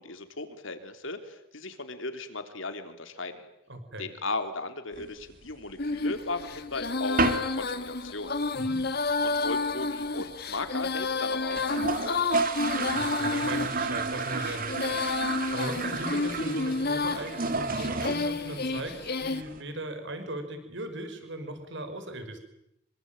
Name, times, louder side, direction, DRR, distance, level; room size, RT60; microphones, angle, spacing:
voice 1, 0.0-3.5 4.0-7.2 7.5-8.3 9.2-12.3, left 3 dB, 65° left, 8 dB, 3.4 m, -37 dB
voice 2, 3.7-4.1 8.5-8.8 12.9-22.4, right 1 dB, 55° right, 8 dB, 5.6 m, -38 dB
sound 1, 4.9-6.0 6.4-6.5 6.7-6.9 7.2-7.6 7.9-8.0 8.3-8.4 8.6-9.1 9.4-9.5 9.7-9.8 10.0-10.1 10.7-10.8 11.0-11.1 11.4-19.6, right 3 dB, 40° right, 2.5 m, -31 dB
Female singing, 5.8-19.4, left 3 dB, 45° left, 1.7 m, -31 dB
27.0 x 24.5 x 9.0 m, 0.81 s
head